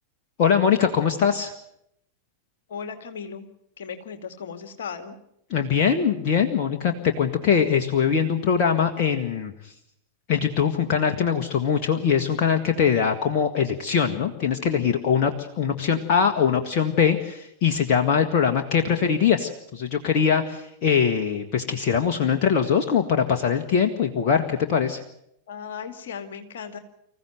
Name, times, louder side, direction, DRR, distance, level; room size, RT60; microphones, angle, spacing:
voice 1, 0.4-1.5 5.5-9.5 10.3-25.0, left 7 dB, 40° left, 4 dB, 1.7 m, -22 dB
voice 2, 2.7-3.5 3.8-5.2 25.5-26.8, left 6 dB, 60° left, 8 dB, 2.3 m, -36 dB
26.0 x 15.0 x 9.3 m, 0.78 s
figure-of-eight pair, 90°, 0 cm